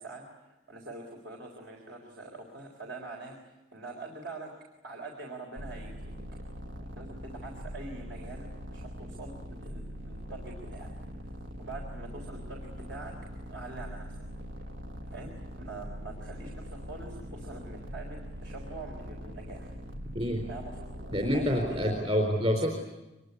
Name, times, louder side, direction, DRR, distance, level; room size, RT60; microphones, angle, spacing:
voice 1, 0.0-4.5 4.8-6.2 6.8-10.9 11.2-13.1 13.5-14.2 15.1-19.8 20.5-22.3, right 2 dB, 65° right, 1 dB, 4.0 m, -44 dB
sound 1, 5.6-22.0, equal, 85° right, 1.8 m, -42 dB
voice 2, 20.1-20.4 21.1-22.8, equal, 35° right, 1 dB, 4.0 m, -27 dB
25.5 x 22.5 x 9.7 m, 1.1 s
head